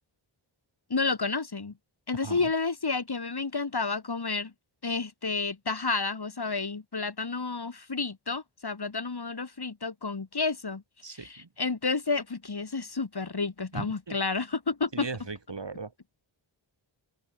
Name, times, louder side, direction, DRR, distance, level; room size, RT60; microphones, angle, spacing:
voice 1, 0.9-1.7 2.1-4.5 4.8-10.8 11.1-15.1, left 4 dB, 50° left, 2.6 m, -30 dB
voice 2, 11.0-11.5 13.7-14.2 14.9-15.9, right 4 dB, 55° right, 3.5 m, -38 dB
wide cardioid pair, 50°, 50 cm